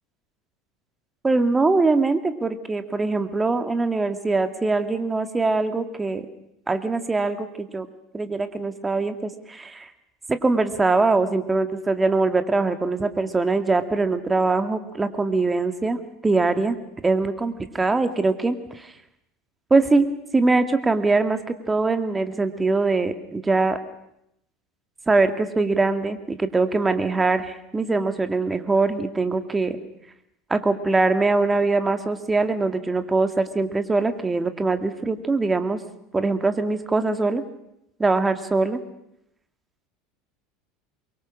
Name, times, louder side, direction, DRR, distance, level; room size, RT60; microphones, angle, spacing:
voice 1, 1.2-6.3 6.7-7.9 8.1-9.9 10.3-16.8 17.0-18.9 19.7-20.1 20.3-23.8 25.1-29.8 30.5-35.8 36.1-37.4 38.0-38.8, right 3 dB, 15° right, 9 dB, 2.0 m, -22 dB
23.5 x 23.0 x 6.4 m, 0.81 s
figure-of-eight pair, 75°, 0 cm